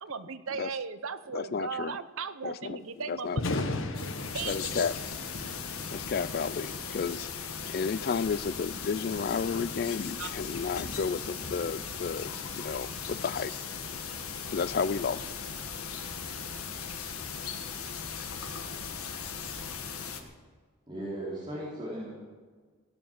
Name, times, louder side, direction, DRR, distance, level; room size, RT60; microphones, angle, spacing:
voice 1, 0.0-3.6 4.3-5.0 10.2-10.3, right 5 dB, 75° right, 13 dB, 0.8 m, -37 dB
voice 2, 1.3-2.0 2.4-2.8 3.1-3.7 4.4-4.9 5.9-13.5 14.5-15.3, left 5 dB, 45° left, 16 dB, 0.3 m, -32 dB
Thunder, 3.2-17.4, left 2 dB, 65° left, 1.2 m, -41 dB
sound 1, 3.9-20.2, left 6 dB, 90° left, 1.5 m, -38 dB
voice 3, 20.9-22.1, right 1 dB, 20° right, -7 dB, 3.4 m, -37 dB
17.0 x 9.6 x 7.5 m, 1.5 s
head